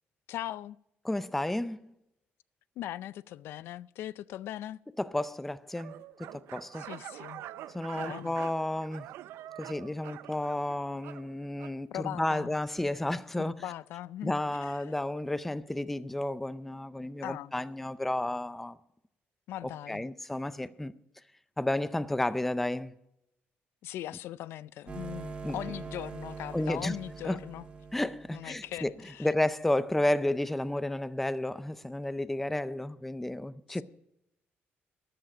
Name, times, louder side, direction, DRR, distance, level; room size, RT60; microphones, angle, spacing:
voice 1, 0.3-0.8 2.8-4.8 6.7-7.4 7.9-8.4 11.9-12.6 13.4-14.9 17.2-17.5 19.5-20.0 23.8-27.7 28.3-29.3 33.7-33.8, left 13 dB, 70° left, 0.4 m, -40 dB
voice 2, 1.0-1.9 5.0-6.9 7.7-9.1 9.6-13.5 14.2-18.8 19.6-20.9 21.6-22.9 25.4-25.6 26.5-27.0 27.2-27.4 27.9-28.9 29.2-33.8, left 1 dB, 5° left, 0.4 m, -32 dB
sound 1, 5.7-11.8, right 13 dB, 85° right, 0.5 m, -45 dB
sound 2, 24.9-29.2, right 4 dB, 30° right, 1.7 m, -43 dB
13.5 x 11.0 x 5.0 m
cardioid pair, 175°, 4 cm